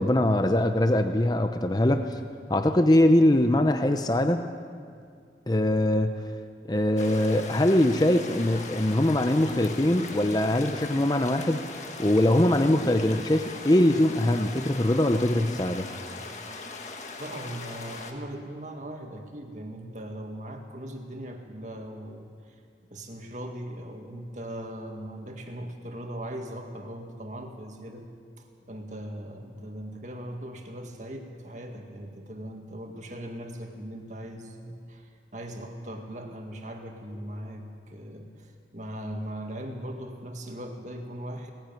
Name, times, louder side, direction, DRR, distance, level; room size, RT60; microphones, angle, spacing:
voice 1, 0.0-2.2 2.5-4.5 5.5-6.2 6.7-11.6 12.0-15.9, left 1 dB, 20° left, 7 dB, 0.7 m, -22 dB
sound 1, 7.0-18.1, left 3 dB, 40° left, 1.7 m, -40 dB
voice 2, 17.2-22.6 22.9-28.1 28.4-41.5, right 1 dB, 45° right, 3 dB, 2.0 m, -39 dB
18.5 x 15.0 x 9.2 m, 2.2 s
head